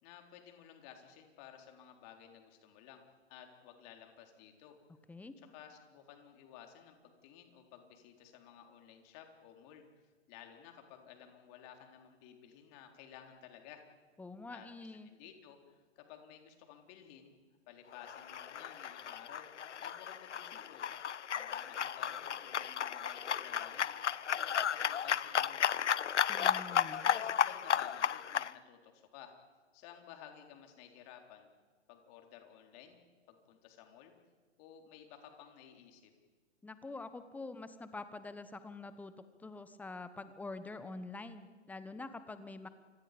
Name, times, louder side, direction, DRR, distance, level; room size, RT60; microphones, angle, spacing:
voice 1, 0.0-3.0 3.3-4.8 5.5-9.8 10.3-13.8 14.5-14.7 15.0-17.3 17.7-19.5 19.8-20.9 21.3-23.9 24.3-26.1 26.9-29.3 29.7-31.5 31.9-33.0 33.3-34.1 34.6-36.1, left 9 dB, 35° left, 3 dB, 4.0 m, -55 dB
voice 2, 14.2-15.1 26.2-27.1 36.6-42.7, left 3 dB, 5° left, 12 dB, 1.2 m, -46 dB
sound 1, 18.0-28.5, left 8 dB, 75° left, 0.8 m, -34 dB
30.0 x 25.5 x 5.3 m, 1.5 s
figure-of-eight pair, 120°, 36 cm